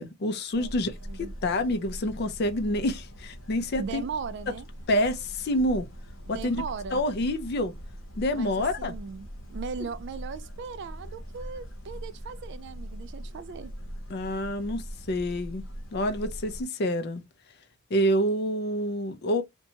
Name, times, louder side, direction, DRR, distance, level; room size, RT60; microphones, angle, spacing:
voice 1, 0.0-0.9 1.2-4.0 4.9-5.9 6.3-6.6 6.9-7.7 8.2-8.9 14.1-15.6 15.9-17.2 17.9-19.4, left 1 dB, 50° left, 0.4 m, -27 dB
sound 1, 0.5-16.6, equal, 75° left, 0.8 m, -41 dB
voice 2, 1.0-1.3 3.8-4.7 6.3-7.0 8.3-13.7, right 5 dB, 55° right, 0.3 m, -38 dB
2.8 x 2.2 x 2.6 m
head